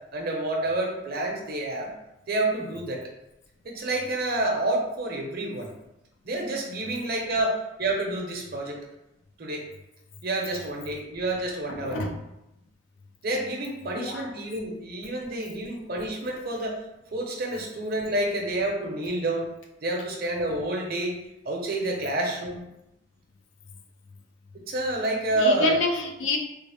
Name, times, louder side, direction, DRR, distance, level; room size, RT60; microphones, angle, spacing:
voice 1, 0.1-1.9 2.3-3.0 3.6-5.7 6.2-8.8 9.4-9.6 10.2-12.0 13.2-16.8 17.1-19.5 19.8-21.2 21.4-22.6 24.7-25.7, right 2 dB, 50° right, 0 dB, 0.7 m, -28 dB
voice 2, 11.7-12.2 13.9-14.3 25.3-26.4, left 3 dB, 80° left, 3 dB, 0.5 m, -28 dB
3.5 x 2.0 x 3.4 m, 0.89 s
head